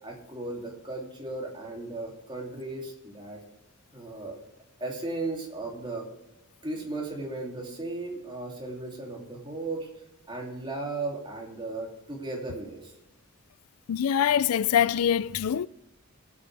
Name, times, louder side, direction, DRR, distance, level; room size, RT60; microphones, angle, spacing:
voice 1, 0.0-3.4 3.9-4.4 4.8-6.1 6.6-12.9, right 2 dB, 20° right, 2.8 m, -36 dB
voice 2, 13.9-15.7, left 9 dB, 80° left, 0.4 m, -24 dB
20.0 x 8.6 x 3.4 m
head